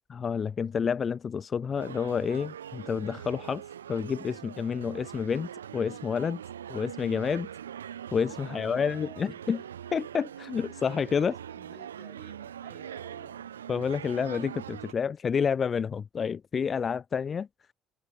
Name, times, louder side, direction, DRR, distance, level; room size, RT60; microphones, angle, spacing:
voice 1, 0.1-3.6 3.9-6.4 6.7-7.5 8.1-9.6 9.9-11.3 13.7-17.5, left 6 dB, 40° left, 0.5 m, -29 dB
sound 1, 1.8-14.9, right 9 dB, 85° right, 0.4 m, -42 dB
voice 2, 8.4-9.4 10.6-13.6, right 2 dB, 10° right, 6.9 m, -54 dB
hypercardioid pair, 55°, 0 cm